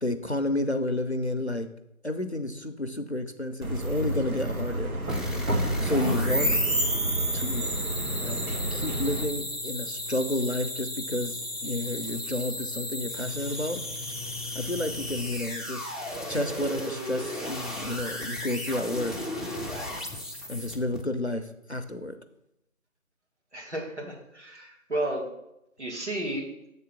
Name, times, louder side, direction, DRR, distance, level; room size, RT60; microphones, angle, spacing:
voice 1, 0.0-1.7 2.0-4.9 5.8-6.6 7.3-7.7 8.2-8.4 8.7-13.8 14.5-15.9 16.3-19.1 20.5-22.1, left 1 dB, 50° left, 7 dB, 0.6 m, -30 dB
sound 1, 3.6-9.2, right 1 dB, 80° right, 1.5 m, -28 dB
sound 2, 5.1-21.0, left 1 dB, ahead, 0.6 m, -35 dB
voice 2, 23.5-25.3 25.8-26.5, right 1 dB, 55° right, -1 dB, 2.1 m, -32 dB
7.9 x 3.8 x 5.9 m, 0.85 s
figure-of-eight pair, 180°, 43 cm